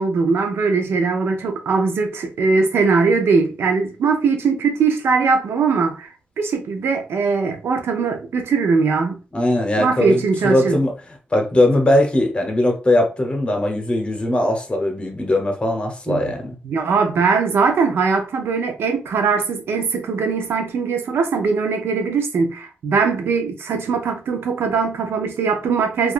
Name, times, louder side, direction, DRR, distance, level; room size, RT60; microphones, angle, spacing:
voice 1, 0.0-6.1 6.4-9.2 9.8-10.8 16.1-16.3 16.6-26.1, right 4 dB, 85° right, 0.4 m, -20 dB
voice 2, 9.3-10.9 11.3-16.6, left 1 dB, 30° left, 0.8 m, -19 dB
2.8 x 2.3 x 2.4 m
cardioid pair, 90°, 4 cm